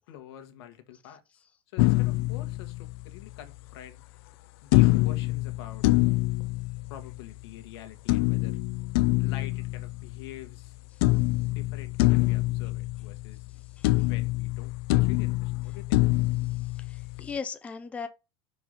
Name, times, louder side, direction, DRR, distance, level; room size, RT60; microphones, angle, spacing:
voice 1, 0.1-1.2 1.7-4.0 4.6-5.9 6.9-8.6 9.2-10.7 11.5-13.5 14.0-16.0, left 11 dB, 90° left, 1.5 m, -46 dB
sound 1, 1.8-3.3 4.7-7.3 8.1-10.7 11.0-13.6 13.8-17.3, left 20 dB, 65° left, 0.4 m, -25 dB
voice 2, 13.8-14.1 16.4-18.1, left 5 dB, 10° left, 0.5 m, -38 dB
5.5 x 4.7 x 5.0 m
cardioid pair, 170°, 13 cm